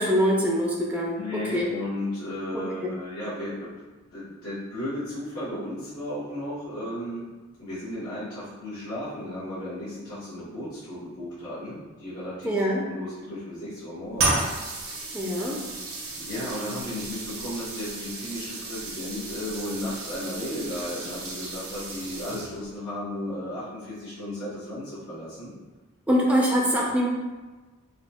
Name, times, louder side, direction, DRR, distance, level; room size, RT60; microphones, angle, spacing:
voice 1, 0.0-1.7 2.5-2.9 12.4-12.8 15.1-15.6 26.1-27.1, equal, 5° right, -3 dB, 0.4 m, -24 dB
voice 2, 1.1-3.7 4.1-7.2 7.6-14.5 16.1-25.5, left 1 dB, 90° left, -11 dB, 1.4 m, -34 dB
sound 1, 14.2-22.8, right 3 dB, 85° right, 0.8 m, -33 dB
4.1 x 2.2 x 2.8 m, 1.2 s
head